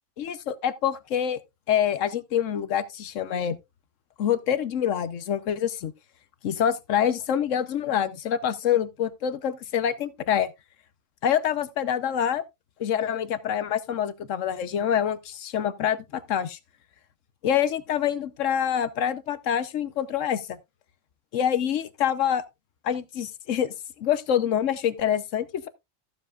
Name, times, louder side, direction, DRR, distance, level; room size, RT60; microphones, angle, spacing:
voice 1, 0.2-1.4 1.7-3.6 4.2-5.9 6.4-10.5 11.2-12.4 12.8-16.6 17.4-20.6 21.3-22.4 22.8-25.7, left 9 dB, 70° left, 1.1 m, -26 dB
14.5 x 7.3 x 2.3 m
omnidirectional pair, 1.4 m